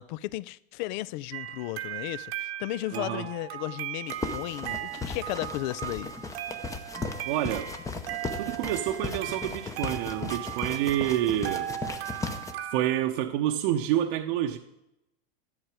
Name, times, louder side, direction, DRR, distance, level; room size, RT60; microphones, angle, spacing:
voice 1, 0.0-6.1, left 17 dB, 50° left, 0.4 m, -34 dB
sound 1, 1.3-13.0, right 12 dB, 75° right, 1.2 m, -37 dB
voice 2, 2.9-3.3 7.3-7.7 8.4-11.7 12.7-14.6, right 12 dB, 55° right, 0.9 m, -28 dB
sound 2, 4.1-12.5, left 4 dB, 10° left, 0.8 m, -37 dB
12.0 x 10.5 x 4.9 m
supercardioid pair, 140°, 32 cm